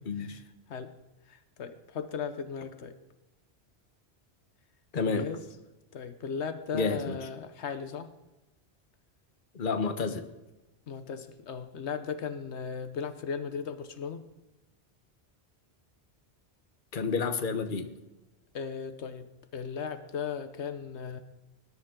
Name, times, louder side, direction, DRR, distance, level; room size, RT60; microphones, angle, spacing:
voice 1, 0.0-0.4 4.9-5.3 6.7-7.2 9.5-10.3 16.9-17.9, left 4 dB, 50° left, 8 dB, 1.2 m, -30 dB
voice 2, 1.3-2.9 5.1-5.4 5.9-8.1 10.9-14.2 18.5-19.3 19.5-21.2, left 6 dB, 85° left, 10 dB, 1.2 m, -37 dB
20.0 x 10.5 x 3.8 m, 1.1 s
omnidirectional pair, 1.1 m